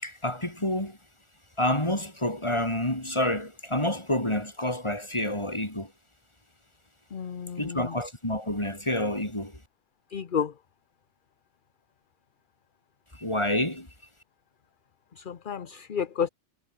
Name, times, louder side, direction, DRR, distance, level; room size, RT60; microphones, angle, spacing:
voice 1, 0.0-1.0 1.6-5.9 7.6-9.6 13.1-13.9, left 1 dB, 25° left, 5.0 m, -28 dB
voice 2, 7.1-7.9 10.1-10.5 15.2-16.3, left 7 dB, 50° left, 1.1 m, -31 dB
omnidirectional pair, 1.2 m